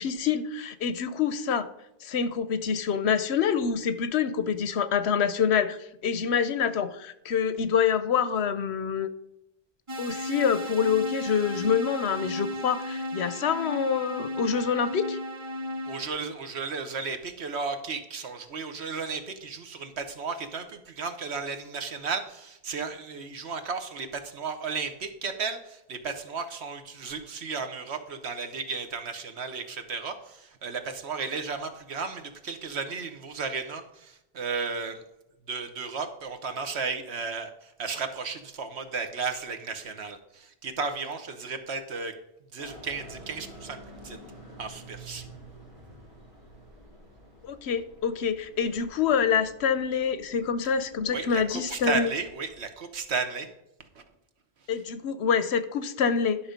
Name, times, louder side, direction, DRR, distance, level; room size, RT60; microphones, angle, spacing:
voice 1, 0.0-1.7 2.0-5.8 6.0-9.1 10.0-15.2 47.4-52.1 54.7-56.4, left 7 dB, 80° left, 12 dB, 1.0 m, -26 dB
sound 1, 9.9-16.1, left 1 dB, 30° right, 0.8 m, -35 dB
voice 2, 15.9-35.0 35.5-42.1 42.5-43.8 44.0-44.2 44.6-45.3 51.1-53.5 53.9-54.0, right 5 dB, 80° right, 7 dB, 1.3 m, -34 dB
sound 2, 42.6-52.6, right 1 dB, 50° right, 3.4 m, -49 dB
11.5 x 5.8 x 5.1 m, 0.85 s
omnidirectional pair, 1.1 m